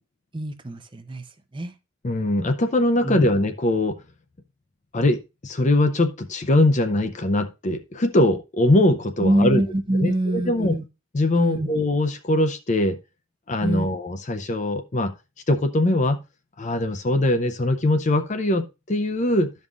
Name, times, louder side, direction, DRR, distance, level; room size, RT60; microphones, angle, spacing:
voice 1, 0.3-1.2 1.5-1.7 3.0-3.3 9.2-10.8 11.3-11.7 13.6-13.9, right 1 dB, 25° right, 9 dB, 0.5 m, -24 dB
voice 2, 2.0-4.0 4.9-9.6 9.9-10.8 11.1-13.0 13.5-15.1 15.5-16.2 16.6-19.5, left 1 dB, 35° left, 9 dB, 0.5 m, -22 dB
13.5 x 5.4 x 2.4 m, 0.25 s
head